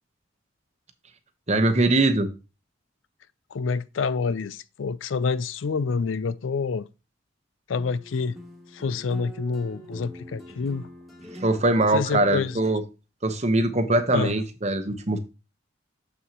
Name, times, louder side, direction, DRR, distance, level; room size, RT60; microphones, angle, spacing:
voice 1, 1.5-2.3 11.4-12.8 13.2-15.2, right 2 dB, 35° right, 0.9 m, -22 dB
voice 2, 3.5-6.9 7.7-8.3 8.7-10.9 11.9-12.6 14.1-14.4, left 5 dB, 80° left, 0.4 m, -27 dB
sound 1, 7.8-12.7, equal, ahead, 1.5 m, -44 dB
7.2 x 6.7 x 2.9 m
head